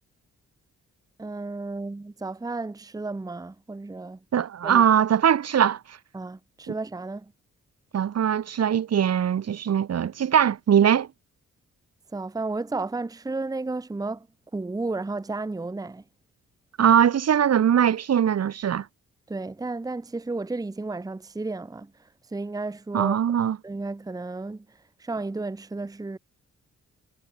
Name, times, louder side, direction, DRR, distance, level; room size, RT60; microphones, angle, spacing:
voice 1, 1.2-4.2 4.6-4.8 6.1-7.3 12.1-14.3 14.5-16.0 19.3-21.9 22.3-23.2 23.6-24.6 25.0-26.2, right 3 dB, 10° right, 0.9 m, -32 dB
voice 2, 4.3-6.0 6.7-6.8 7.9-11.1 16.8-18.9 22.9-23.6, right 9 dB, 55° right, 1.6 m, -21 dB
wide cardioid pair, 130°, 30 cm